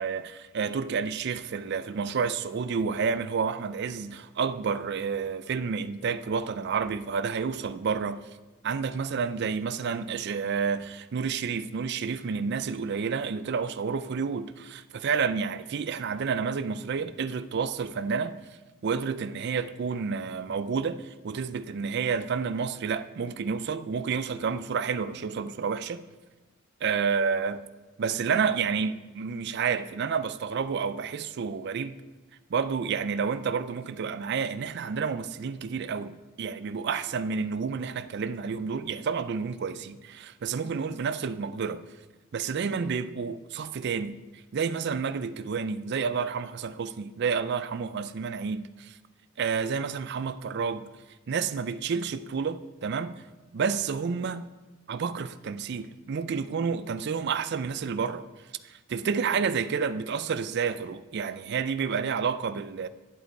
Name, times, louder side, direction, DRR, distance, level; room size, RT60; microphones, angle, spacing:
voice 1, 0.0-8.3 8.6-18.3 18.8-26.0 26.8-27.6 28.0-32.0 32.5-41.9 42.3-44.2 44.5-49.0 49.4-50.9 51.3-53.2 53.5-54.5 54.9-58.3 58.6-62.9, right 5 dB, 50° right, 0.4 m, -30 dB
10.5 x 7.7 x 4.1 m
head